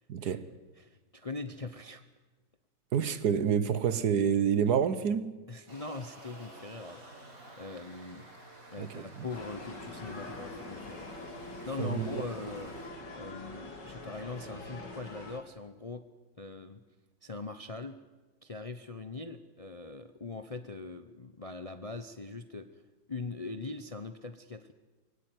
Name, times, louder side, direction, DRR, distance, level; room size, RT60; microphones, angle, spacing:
voice 1, 0.1-0.5 2.9-5.4 8.8-9.3 11.8-12.2, right 7 dB, 65° right, 1.5 m, -28 dB
voice 2, 0.8-2.0 5.5-8.3 8.7-11.1 11.6-12.7 13.1-16.0 16.4-16.8 17.2-18.0 18.4-22.8 23.1-24.7, left 3 dB, 30° left, 0.6 m, -41 dB
sound 1, 5.7-12.9, right 1 dB, 50° right, 5.5 m, -52 dB
sound 2, 9.3-15.4, left 2 dB, 80° left, 3.4 m, -44 dB
23.0 x 17.0 x 9.4 m
omnidirectional pair, 1.9 m